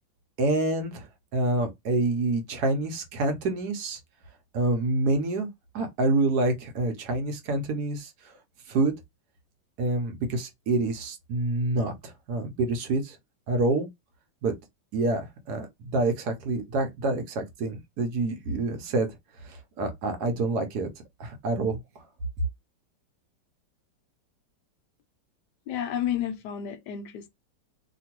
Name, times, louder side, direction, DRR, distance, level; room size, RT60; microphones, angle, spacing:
voice 1, 0.4-1.1 1.3-4.0 4.5-5.5 5.7-8.1 8.7-8.9 9.8-13.2 13.5-13.9 14.4-14.5 14.9-19.1 19.4-20.9 21.2-21.8, right 2 dB, 65° right, 1.2 m, -27 dB
voice 2, 25.7-27.3, left 9 dB, 75° left, 1.1 m, -31 dB
2.9 x 2.6 x 2.9 m
omnidirectional pair, 1.9 m